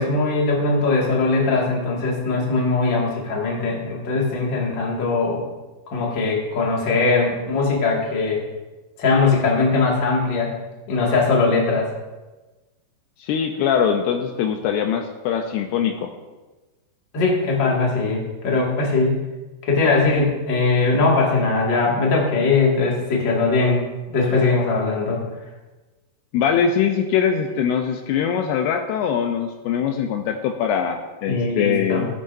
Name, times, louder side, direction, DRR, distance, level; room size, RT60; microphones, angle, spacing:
voice 1, 0.0-5.4 5.9-8.4 9.0-10.5 10.9-11.9 17.1-19.2 19.6-23.8 24.1-25.2 31.3-32.1, left 3 dB, 35° left, -3 dB, 2.0 m, -20 dB
voice 2, 13.2-16.1 26.3-32.1, left 7 dB, 80° left, 4 dB, 2.6 m, -22 dB
15.5 x 10.0 x 2.7 m, 1.2 s
omnidirectional pair, 4.9 m